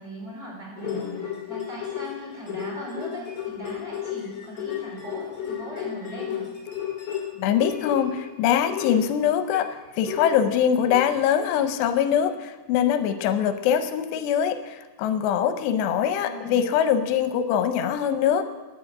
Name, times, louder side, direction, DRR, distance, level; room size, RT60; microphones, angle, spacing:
voice 1, 0.0-6.5 16.1-16.7, right 1 dB, 25° right, -4 dB, 4.8 m, -39 dB
sound 1, 0.8-8.3 8.7-11.5 11.9-12.0, left 9 dB, 40° left, 2.4 m, -33 dB
voice 2, 7.4-18.5, left 9 dB, 85° left, 9 dB, 2.9 m, -23 dB
10.5 x 10.0 x 8.6 m, 1.2 s
omnidirectional pair, 4.9 m